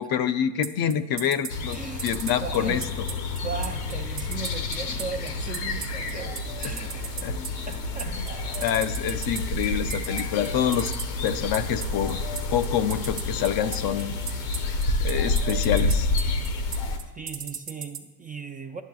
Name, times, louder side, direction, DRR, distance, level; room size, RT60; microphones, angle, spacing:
voice 1, 0.0-2.8 6.6-6.9 7.2-7.4 8.1-8.3 8.6-10.9 11.2-12.2 12.5-14.1 15.0-16.1, left 9 dB, 55° left, 10 dB, 0.5 m, -26 dB
sound 1, 0.6-18.0, right 7 dB, 45° right, 1.0 m, -35 dB
sound 2, 1.5-17.0, left 2 dB, 90° left, 0.9 m, -29 dB
voice 2, 1.7-2.2 2.4-2.9 3.4-7.3 7.7-8.7 16.5-16.6 17.0-18.8, right 5 dB, 20° right, 6 dB, 0.4 m, -38 dB
10.5 x 6.8 x 2.3 m, 1.1 s
supercardioid pair, 80°, 45 cm